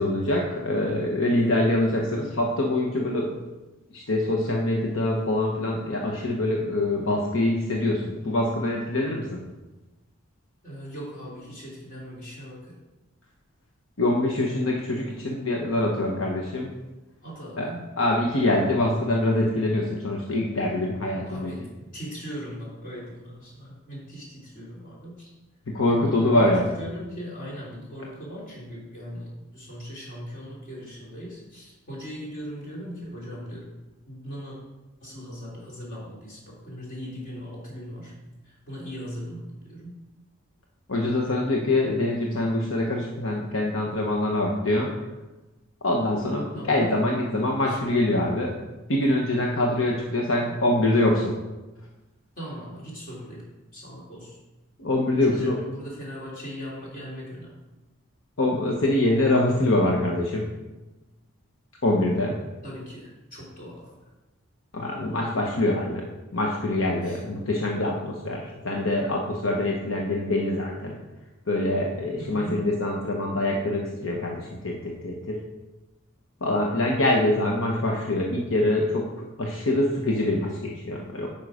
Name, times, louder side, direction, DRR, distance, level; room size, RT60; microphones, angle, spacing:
voice 1, 0.0-3.4 3.9-9.4 14.0-16.7 17.6-17.7 18.0-21.5 25.7-26.7 40.9-44.9 45.8-51.3 54.8-55.6 58.4-60.5 61.8-62.4 64.7-66.0 66.3-71.0 71.5-75.4 76.4-79.0 79.4-81.3, left 1 dB, 75° left, -1 dB, 1.0 m, -24 dB
voice 2, 10.6-12.8 17.2-17.9 21.3-25.3 25.9-33.7 34.1-34.6 35.0-38.1 38.4-39.9 46.5-46.9 47.7-47.8 50.5-50.6 52.4-53.5 53.7-54.4 55.1-57.6 62.6-64.0 67.0-67.2 72.2-72.6, equal, 45° left, -5 dB, 3.3 m, -39 dB
9.2 x 5.6 x 4.9 m, 1.1 s
head